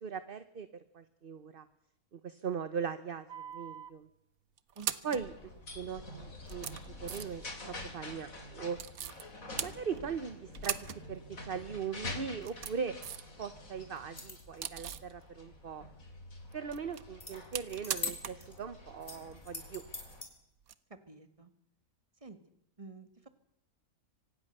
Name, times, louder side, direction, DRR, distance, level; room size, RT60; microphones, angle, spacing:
voice 1, 0.0-0.7 0.9-1.6 2.1-4.1 5.0-8.8 9.6-10.8 11.1-12.9 13.4-15.8 16.5-19.8, right 6 dB, 40° right, 12 dB, 1.1 m, -39 dB
sound 1, 3.3-3.9 4.6-5.3 6.0-6.1 6.4-7.5 8.8-9.2 9.6-10.2 10.5-11.0 11.3-11.4 12.2-13.3 13.7-15.1 16.5-18.5 18.7-18.8 20.6-20.7, right 9 dB, 70° right, 1.4 m, -40 dB
voice 2, 4.8-5.3 21.1-21.5 22.2-22.4 22.8-23.3, right 4 dB, 20° right, 9 dB, 2.0 m, -51 dB
sound 2, 5.2-20.2, left 2 dB, 65° left, 3.7 m, -47 dB
sound 3, 14.0-14.6 17.2-17.3 17.7-18.6 19.0-20.3, left 3 dB, 25° left, 4.1 m, -42 dB
25.0 x 18.5 x 6.7 m, 0.76 s
omnidirectional pair, 1.6 m